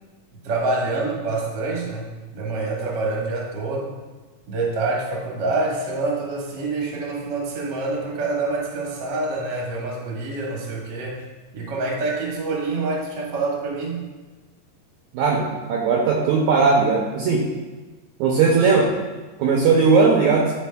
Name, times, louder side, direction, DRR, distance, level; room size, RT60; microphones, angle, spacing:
voice 1, 0.4-3.9 4.5-11.2 11.5-14.1, right 3 dB, 70° right, -2 dB, 1.0 m, -26 dB
voice 2, 15.1-17.5 18.2-18.9 19.4-20.5, right 4 dB, 90° right, -1 dB, 1.6 m, -18 dB
11.0 x 4.0 x 2.2 m, 1.3 s
omnidirectional pair, 4.0 m